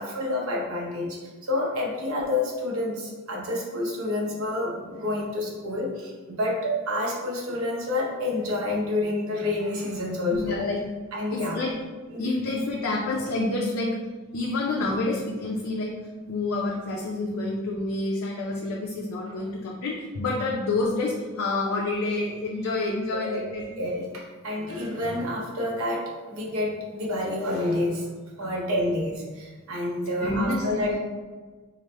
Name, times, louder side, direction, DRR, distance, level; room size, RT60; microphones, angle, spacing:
voice 1, 0.0-10.6 11.1-11.6 12.1-12.3 23.1-23.5 23.8-28.1 28.4-31.0, left 2 dB, 75° right, -3 dB, 0.8 m, -28 dB
voice 2, 10.3-10.8 11.3-11.8 12.2-14.0 14.3-16.0 16.3-23.8 28.4-28.5 30.2-31.0, left 2 dB, 70° left, -2 dB, 0.5 m, -28 dB
4.7 x 2.1 x 3.2 m, 1.4 s
head